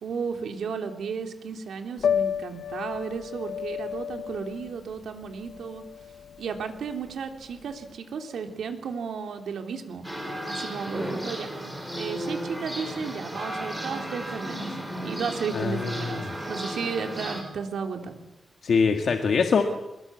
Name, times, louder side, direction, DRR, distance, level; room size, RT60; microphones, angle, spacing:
voice 1, 0.0-5.8 6.4-10.0 10.5-11.5 12.0-18.1, right 6 dB, 75° right, 5 dB, 3.2 m, -34 dB
Piano, 2.0-7.9, left 8 dB, 75° left, 0.8 m, -32 dB
sound 1, 10.0-17.4, equal, 5° right, 4.9 m, -34 dB
voice 2, 15.5-16.2 18.6-19.6, left 5 dB, 55° left, 5 dB, 1.7 m, -23 dB
24.0 x 21.5 x 8.5 m, 0.96 s
wide cardioid pair, 165°, 0 cm